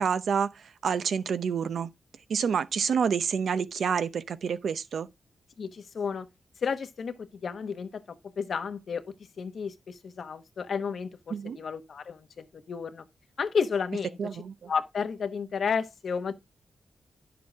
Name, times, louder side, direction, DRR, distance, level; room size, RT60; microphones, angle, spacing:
voice 1, 0.0-1.9 2.3-5.1 11.3-11.6 14.2-14.7, right 6 dB, 70° right, 0.7 m, -28 dB
voice 2, 5.6-6.3 6.6-9.0 9.4-13.1 13.4-14.2 14.7-16.3, left 6 dB, 60° left, 1.1 m, -32 dB
10.5 x 6.9 x 3.6 m
wide cardioid pair, 140°, 0 cm